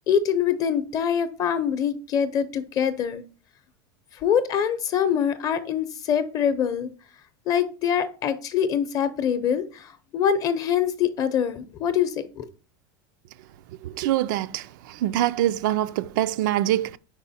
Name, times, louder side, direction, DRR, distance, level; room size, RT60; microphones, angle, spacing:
voice 1, 0.1-3.2 4.2-6.9 7.5-12.5, left 8 dB, 30° left, 0.7 m, -24 dB
voice 2, 13.8-14.6 15.0-17.0, right 13 dB, 65° right, 0.4 m, -24 dB
5.0 x 4.8 x 4.1 m
supercardioid pair, 145°, 11 cm